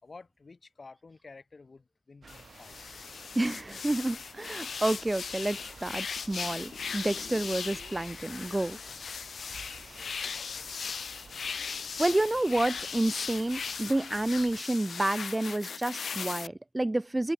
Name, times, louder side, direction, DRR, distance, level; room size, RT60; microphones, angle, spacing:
voice 1, 0.0-2.8 8.4-8.6 9.8-11.0, left 4 dB, 45° left, 4.6 m, -53 dB
sound 1, 2.2-14.6, right 5 dB, 60° right, 7.0 m, -52 dB
sound 2, 2.3-16.5, left 6 dB, 75° left, 1.6 m, -38 dB
voice 2, 3.4-8.8 9.9-10.0 12.0-17.3, right 1 dB, 20° right, 0.3 m, -29 dB
cardioid pair, 70°, 0 cm